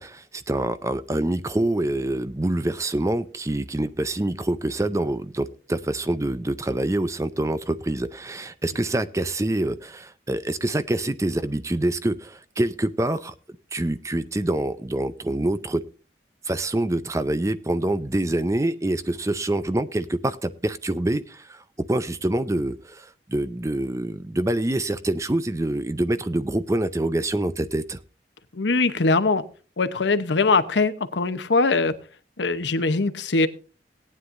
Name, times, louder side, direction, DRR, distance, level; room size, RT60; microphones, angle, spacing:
voice 1, 0.0-13.3 13.7-15.8 16.5-21.6 21.9-28.0, right 1 dB, 15° right, 13 dB, 0.5 m, -26 dB
voice 2, 28.5-29.4 29.8-31.9 32.4-33.5, left 3 dB, 85° left, 11 dB, 0.9 m, -21 dB
18.0 x 9.6 x 2.6 m, 0.37 s
head